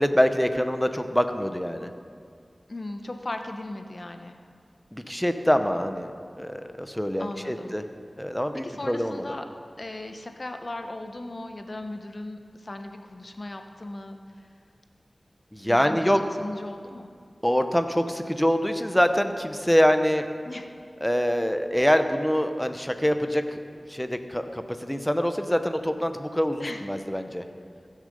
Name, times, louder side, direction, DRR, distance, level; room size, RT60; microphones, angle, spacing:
voice 1, 0.0-1.9 4.9-6.1 6.4-7.8 8.2-9.2 15.5-16.2 17.4-20.3 21.0-23.6 23.9-27.4, equal, 5° left, 8 dB, 0.8 m, -25 dB
voice 2, 2.7-4.4 7.2-7.8 8.5-9.5 9.8-14.5 15.7-17.1 20.4-20.7 26.6-26.8, left 2 dB, 55° left, 6 dB, 0.9 m, -37 dB
16.0 x 6.6 x 5.3 m, 2.2 s
wide cardioid pair, 50°, 0 cm